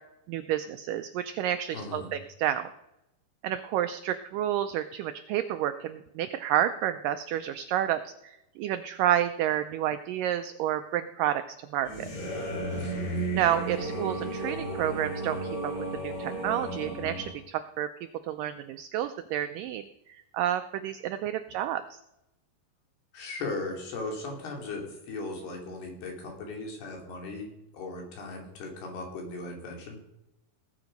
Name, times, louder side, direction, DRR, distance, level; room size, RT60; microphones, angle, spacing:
voice 1, 0.3-2.7 3.4-11.4 11.7-12.1 13.3-17.9 18.3-19.8 20.3-22.0, right 11 dB, 90° right, 9 dB, 1.9 m, -30 dB
voice 2, 1.7-2.1 12.7-13.2 23.1-30.0, left 2 dB, 85° left, 1 dB, 4.7 m, -38 dB
sound 1, 11.8-17.3, right 2 dB, 35° left, 5.2 m, -33 dB
18.0 x 8.1 x 5.2 m, 0.90 s
omnidirectional pair, 4.5 m